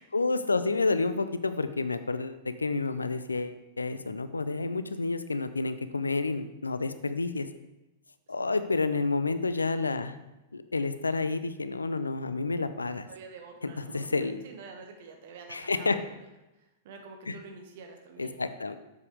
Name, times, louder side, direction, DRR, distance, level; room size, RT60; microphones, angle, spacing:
voice 1, 0.0-7.5 8.3-10.2 10.5-13.1 13.9-14.4 15.5-16.0 17.3-17.4 18.2-18.8, left 3 dB, 90° left, 12 dB, 0.4 m, -29 dB
voice 2, 8.3-8.6 13.0-16.3 16.5-18.4, right 4 dB, 60° right, 4 dB, 1.3 m, -48 dB
7.2 x 6.7 x 3.4 m, 1.0 s
figure-of-eight pair, 100°, 0 cm